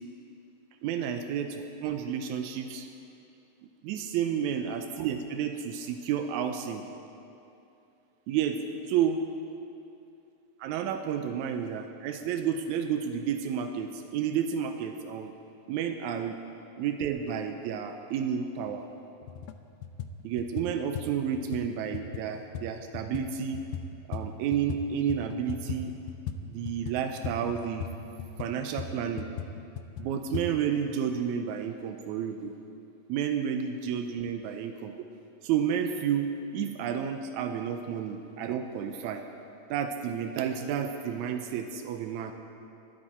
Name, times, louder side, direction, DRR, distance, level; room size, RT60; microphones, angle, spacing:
voice 1, 0.8-2.9 3.8-6.9 8.3-8.6 8.9-9.2 10.6-15.3 15.7-16.4 16.8-18.9 20.2-23.6 24.1-25.9 26.5-27.9 28.4-29.3 30.0-32.5 33.1-34.9 35.4-39.2 39.7-42.3, right 8 dB, 90° right, 6 dB, 1.6 m, -31 dB
sound 1, 18.7-18.8 19.2-19.6 19.8-24.8 25.1-30.5, left 7 dB, 85° left, 2.3 m, -38 dB
20.5 x 9.0 x 4.3 m, 2.6 s
omnidirectional pair, 4.0 m